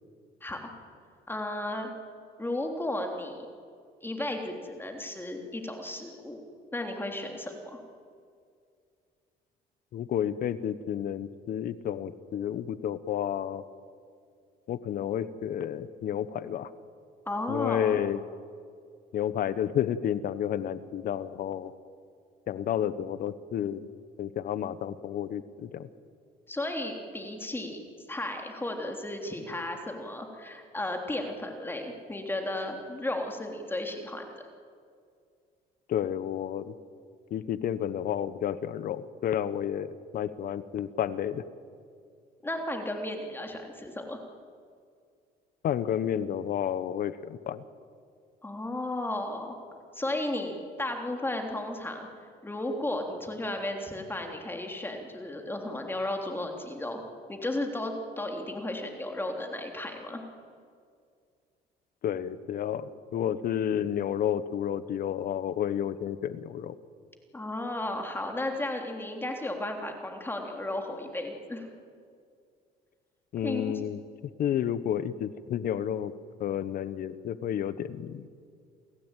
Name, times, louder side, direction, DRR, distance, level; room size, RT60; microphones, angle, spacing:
voice 1, 1.3-1.9 2.4-3.5 4.0-6.4 6.7-7.8 17.2-18.0 26.5-27.8 28.1-34.3 42.4-44.2 48.4-49.6 49.9-52.1 52.4-57.0 57.3-60.2 67.3-71.7 73.4-73.7, left 1 dB, 15° left, 3 dB, 3.4 m, -34 dB
voice 2, 9.9-13.6 14.7-16.7 17.5-18.2 19.1-21.7 22.5-23.8 24.2-25.9 35.9-36.7 37.3-41.4 45.6-47.6 62.0-66.8 73.3-74.0 74.4-76.1 76.4-78.3, left 10 dB, 60° left, 15 dB, 1.1 m, -31 dB
29.0 x 16.0 x 9.1 m, 2.2 s
cardioid pair, 110°, 17 cm